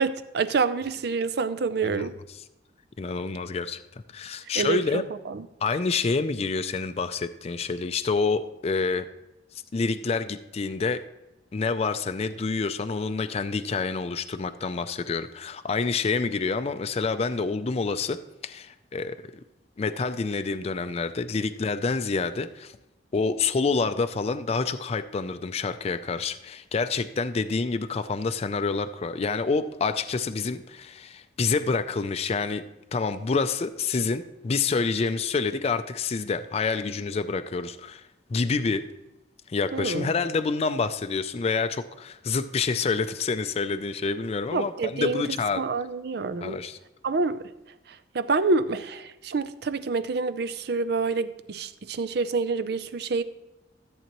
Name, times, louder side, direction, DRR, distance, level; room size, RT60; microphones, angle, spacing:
voice 1, 0.0-2.1 4.6-5.5 39.7-40.1 44.5-45.2 45.6-46.6 47.0-47.5 48.1-53.2, right 4 dB, 65° right, 0.5 m, -27 dB
voice 2, 3.0-3.8 4.1-5.0 5.6-9.1 9.7-11.0 11.5-19.2 19.8-22.7 23.1-32.6 32.9-38.0 38.3-38.8 39.5-45.6 46.4-46.8, left 4 dB, 35° left, 0.4 m, -27 dB
14.0 x 8.1 x 3.0 m
head